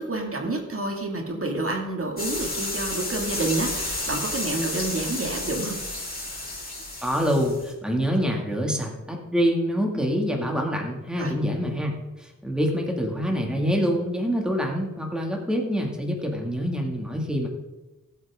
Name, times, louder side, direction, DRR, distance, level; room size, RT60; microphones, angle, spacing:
voice 1, 0.0-5.8 11.2-11.3, right 2 dB, 45° right, 1 dB, 2.2 m, -29 dB
sound 1, 2.2-7.7, left 2 dB, 30° left, 4.5 m, -31 dB
voice 2, 7.0-17.5, equal, ahead, 0 dB, 2.2 m, -26 dB
20.0 x 8.1 x 3.7 m, 1.1 s
wide cardioid pair, 80°, 32 cm